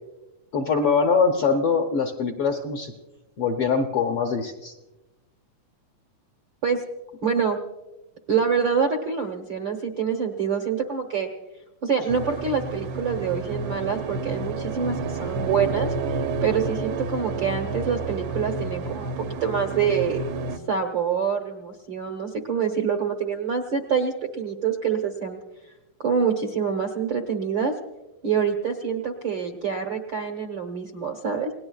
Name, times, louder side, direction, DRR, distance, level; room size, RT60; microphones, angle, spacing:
voice 1, 0.5-2.9 3.4-4.7, left 5 dB, 70° left, 3 dB, 1.4 m, -23 dB
voice 2, 7.2-7.6 8.3-11.3 11.8-15.9 16.4-20.2 20.7-25.4 26.0-27.7 28.2-31.5, right 6 dB, 65° right, 6 dB, 1.2 m, -26 dB
sound 1, 12.1-20.6, right 3 dB, 85° right, 1.1 m, -30 dB
30.0 x 18.5 x 2.3 m, 1.0 s
omnidirectional pair, 3.7 m